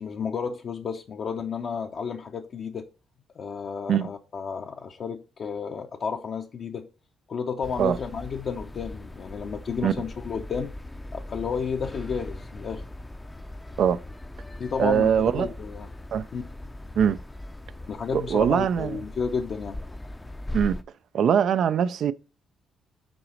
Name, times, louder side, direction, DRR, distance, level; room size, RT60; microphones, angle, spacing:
voice 1, 0.0-2.8 3.4-6.9 7.3-10.7 11.1-12.8 14.6-15.9 16.3-16.4 17.9-19.8, left 6 dB, 50° left, 0.6 m, -32 dB
sound 1, 7.6-20.8, left 1 dB, 15° left, 0.5 m, -39 dB
voice 2, 14.8-15.5 16.1-16.3 17.0-17.2 18.1-19.0 20.5-20.8 21.1-22.1, right 8 dB, 65° right, 0.3 m, -22 dB
6.0 x 4.0 x 6.3 m
cardioid pair, 90°, 0 cm